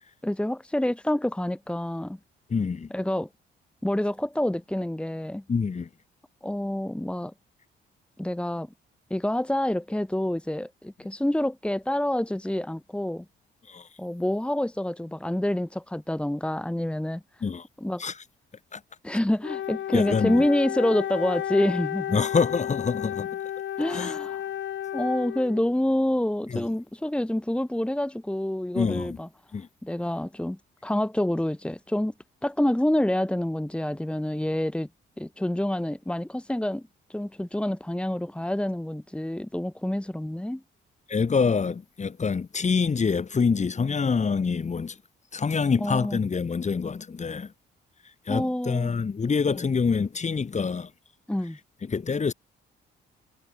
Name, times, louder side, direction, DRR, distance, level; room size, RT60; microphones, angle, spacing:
voice 1, 0.2-2.2 2.9-3.3 3.8-5.4 6.4-7.3 8.2-8.7 9.1-13.2 14.0-17.2 17.8-18.0 19.0-22.2 23.8-24.4 24.9-29.3 29.8-32.1 32.4-34.9 35.2-36.8 37.1-40.6 45.8-46.2 48.3-48.9 49.5-49.6 51.3-51.6, left 1 dB, 5° left, 2.7 m, -27 dB
voice 2, 2.5-2.9 5.5-5.9 13.7-13.9 17.4-17.6 18.0-18.1 18.7-18.8 19.9-20.5 22.1-23.4 23.9-24.1 26.5-26.7 28.7-29.2 29.5-29.7 41.1-45.0 45.3-47.5 48.3-50.9 51.8-52.3, left 5 dB, 35° left, 4.4 m, -26 dB
Wind instrument woodwind instrument, 19.4-25.8, left 11 dB, 65° left, 2.7 m, -32 dB
cardioid pair, 90°, 20 cm